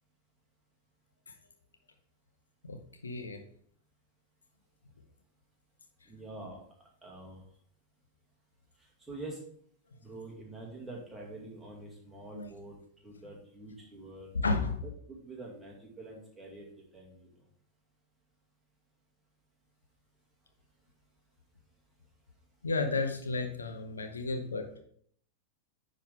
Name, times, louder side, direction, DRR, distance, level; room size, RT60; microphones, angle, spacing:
voice 1, 2.6-3.4 12.3-12.5 14.4-14.8 22.6-24.8, left 3 dB, 75° left, 5 dB, 0.7 m, -33 dB
voice 2, 6.1-6.6 7.0-7.4 9.1-9.4 10.0-12.8 13.0-14.3 15.1-16.7 16.9-17.3, right 2 dB, 10° right, -3 dB, 2.0 m, -46 dB
9.8 x 3.9 x 3.4 m, 0.62 s
figure-of-eight pair, 90°, 0 cm